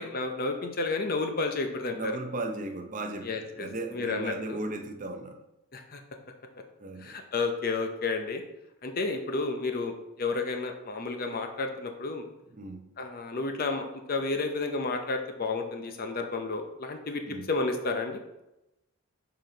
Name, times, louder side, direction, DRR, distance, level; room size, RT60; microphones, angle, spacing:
voice 1, 0.0-2.1 3.2-4.6 5.7-6.0 7.0-8.4 8.8-12.2 13.0-18.2, left 3 dB, 40° left, 5 dB, 0.6 m, -31 dB
voice 2, 1.9-5.4 6.8-7.1 12.6-12.8 17.3-17.5, right 2 dB, 35° right, 5 dB, 0.6 m, -36 dB
6.6 x 4.0 x 3.9 m, 0.91 s
head